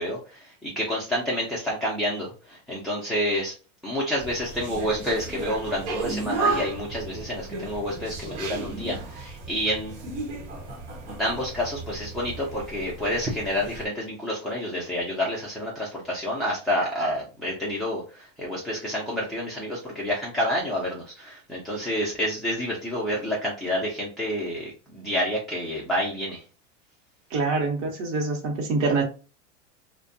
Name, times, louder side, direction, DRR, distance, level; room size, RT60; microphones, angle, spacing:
voice 1, 0.0-3.5 3.8-10.0 11.2-26.4, equal, ahead, -6 dB, 0.4 m, -29 dB
sound 1, 4.2-13.9, right 3 dB, 75° right, 1.0 m, -34 dB
voice 2, 27.3-29.0, right 3 dB, 35° right, 3 dB, 0.9 m, -25 dB
2.6 x 2.2 x 2.6 m, 0.34 s
supercardioid pair, 130°, 37 cm